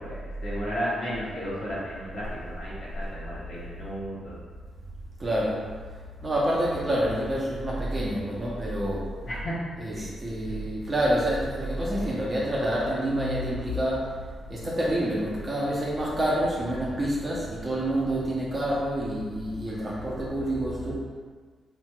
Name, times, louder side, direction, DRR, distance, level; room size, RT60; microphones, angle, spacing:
voice 1, 0.0-4.4 9.3-9.6 9.9-10.0, equal, 60° left, -8 dB, 0.9 m, -34 dB
voice 2, 5.2-5.6 6.2-9.1 9.8-14.2 14.5-21.0, right 1 dB, 35° right, -5 dB, 0.7 m, -27 dB
2.9 x 2.9 x 2.3 m, 1.5 s
supercardioid pair, 55°, 0 cm